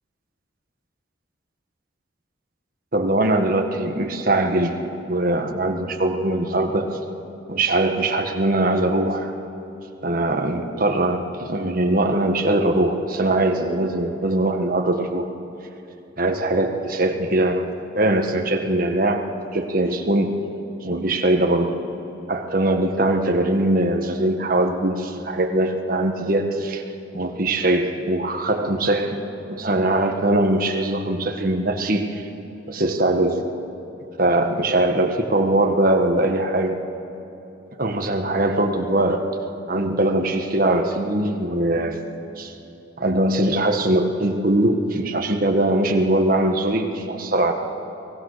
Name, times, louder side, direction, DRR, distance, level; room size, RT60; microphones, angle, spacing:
voice 1, 2.9-7.0 7.5-9.3 10.0-15.3 16.2-17.7 17.9-19.3 19.5-20.4 20.8-21.8 22.3-26.8 27.1-29.2 29.5-32.3 32.7-33.5 34.2-36.8 37.8-39.2 39.7-42.0 42.4-42.5 43.0-47.5, right 1 dB, 45° right, 4 dB, 1.6 m, -21 dB
23.0 x 18.5 x 6.8 m, 2.9 s
head